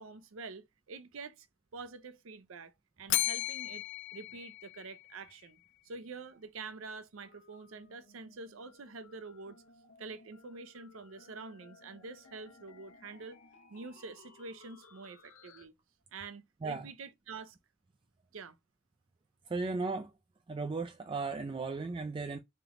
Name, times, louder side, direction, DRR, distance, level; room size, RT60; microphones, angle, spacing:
voice 1, 0.0-1.5 1.7-2.7 3.0-3.8 4.1-5.6 5.8-9.6 10.0-13.4 13.7-15.7 16.1-17.6 18.3-18.6, right 4 dB, 75° right, 0.6 m, -46 dB
Bell, 3.1-5.3, left 15 dB, 60° left, 0.3 m, -35 dB
sound 1, 7.2-15.7, left 3 dB, 80° left, 0.8 m, -60 dB
voice 2, 19.5-20.1 20.5-22.4, right 3 dB, 25° right, 0.3 m, -36 dB
3.7 x 3.3 x 3.0 m
head